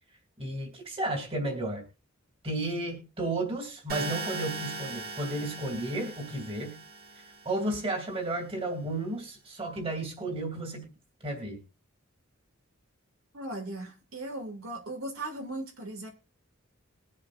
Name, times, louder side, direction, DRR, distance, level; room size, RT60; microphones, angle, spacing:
voice 1, 0.4-1.8 2.4-6.8 7.4-10.9 11.2-11.6, right 2 dB, 25° right, 3 dB, 2.7 m, -33 dB
sound 1, 3.9-7.9, right 3 dB, 50° right, 1.8 m, -39 dB
voice 2, 13.3-16.1, right 2 dB, 85° right, 2 dB, 2.6 m, -38 dB
21.5 x 7.5 x 2.6 m, 0.32 s
head